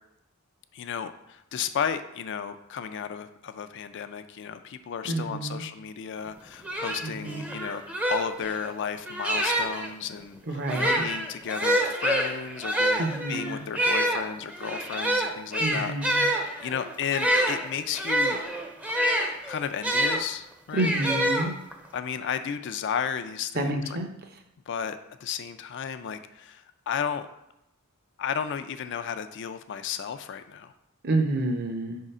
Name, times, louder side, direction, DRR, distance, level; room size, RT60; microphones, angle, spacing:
voice 1, 0.7-18.4 19.5-20.9 21.9-24.0 24.7-27.3 28.2-30.7, left 7 dB, 55° left, 10 dB, 0.4 m, -33 dB
voice 2, 5.0-5.6 7.0-7.5 10.5-11.1 13.0-13.6 15.6-16.2 20.7-21.5 23.5-24.1 31.0-32.0, right 2 dB, 45° right, 4 dB, 0.7 m, -29 dB
sound 1, 6.3-6.4 6.6-9.9 10.6-20.2 20.8-21.9, right 1 dB, 5° right, 0.5 m, -27 dB
4.8 x 3.7 x 5.4 m, 0.85 s
head